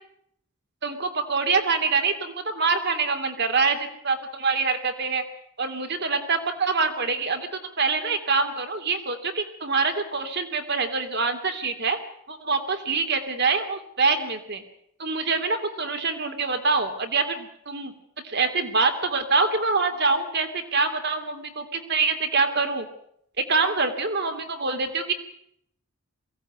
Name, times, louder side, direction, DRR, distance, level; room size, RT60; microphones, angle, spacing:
voice 1, 0.8-5.2 5.6-7.5 7.8-12.0 12.3-14.6 15.0-17.9 18.2-22.9 23.4-25.1, right 4 dB, 50° right, 7 dB, 3.0 m, -25 dB
22.5 x 17.5 x 9.6 m, 0.71 s
head